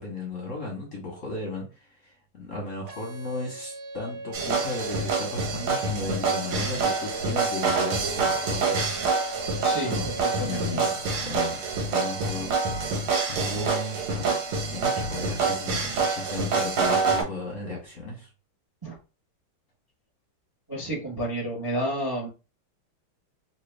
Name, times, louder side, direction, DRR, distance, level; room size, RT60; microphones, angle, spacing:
voice 1, 0.0-9.0 9.8-10.1 10.4-11.6 11.9-12.5 13.3-14.4 14.7-18.3, left 2 dB, 50° left, -1 dB, 1.0 m, -35 dB
sound 1, 2.9-10.9, right 1 dB, 50° right, 0.9 m, -40 dB
sound 2, 4.3-17.2, right 4 dB, 85° right, 1.9 m, -26 dB
voice 2, 9.6-10.0 10.2-10.8 18.8-18.9 20.7-22.3, right 1 dB, 15° right, -2 dB, 0.7 m, -30 dB
3.3 x 2.9 x 3.3 m, 0.31 s
omnidirectional pair, 2.3 m